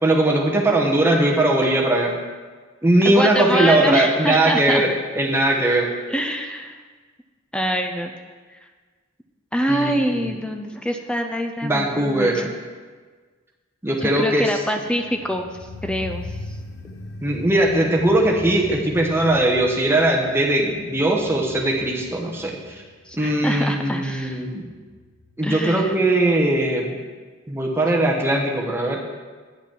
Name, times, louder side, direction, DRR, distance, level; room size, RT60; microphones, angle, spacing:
voice 1, 0.0-2.1 2.8-5.9 9.7-10.3 11.6-12.5 13.8-14.5 17.2-22.8 23.2-24.6 25.4-27.0 27.5-29.0, right 1 dB, 10° right, -1 dB, 1.0 m, -20 dB
voice 2, 3.0-4.9 6.1-6.8 7.5-8.1 8.5-8.6 9.5-12.3 14.0-16.3 23.1-24.4 25.4-25.9, equal, 5° left, 5 dB, 0.4 m, -25 dB
sound 1, 15.0-26.0 26.3-26.4, left 2 dB, 55° left, 0.8 m, -40 dB
8.9 x 5.8 x 5.9 m, 1.5 s
head